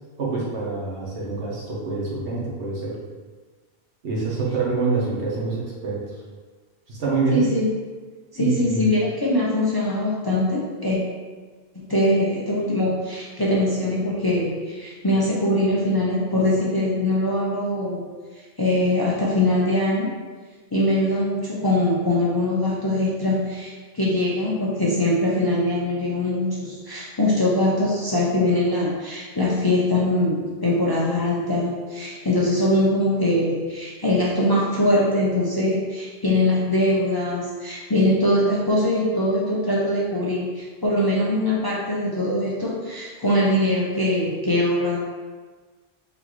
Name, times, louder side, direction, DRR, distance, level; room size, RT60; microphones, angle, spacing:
voice 1, 0.2-3.0 4.0-6.0 6.9-7.4 8.4-8.9, right 4 dB, 80° right, -5 dB, 1.3 m, -26 dB
voice 2, 7.3-7.7 8.3-11.0 11.7-18.0 18.6-20.1 20.7-45.0, left 1 dB, 30° left, -6 dB, 0.4 m, -22 dB
4.0 x 3.4 x 3.0 m, 1.4 s
omnidirectional pair, 1.1 m